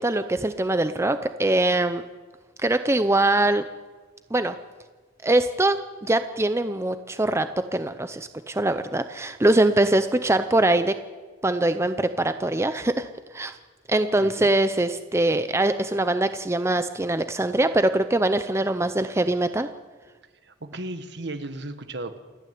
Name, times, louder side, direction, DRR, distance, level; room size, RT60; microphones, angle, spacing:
voice 1, 0.0-2.0 2.6-3.6 4.3-4.5 5.2-11.0 11.4-13.1 13.3-13.5 13.9-19.7, right 2 dB, 15° right, 10 dB, 0.6 m, -23 dB
voice 2, 14.1-14.5 20.4-22.2, right 2 dB, 60° right, 10 dB, 1.4 m, -35 dB
28.5 x 9.7 x 9.4 m, 1.4 s
head